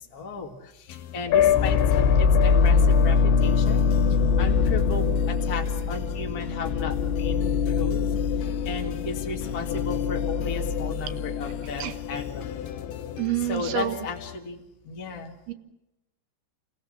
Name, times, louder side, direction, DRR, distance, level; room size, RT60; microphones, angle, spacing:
voice 1, 0.1-3.8 4.4-8.1 8.6-12.6 13.5-14.6 14.8-15.3, left 3 dB, 40° left, 1 dB, 1.4 m, -35 dB
sound 1, 0.9-14.4, left 11 dB, 70° left, 2.5 m, -42 dB
sound 2, 1.3-13.2, left 6 dB, 85° left, 3.4 m, -23 dB
voice 2, 13.2-14.0 15.5-15.6, right 12 dB, 70° right, 10 dB, 2.8 m, -27 dB
28.5 x 17.5 x 7.6 m, 0.92 s
omnidirectional pair, 5.0 m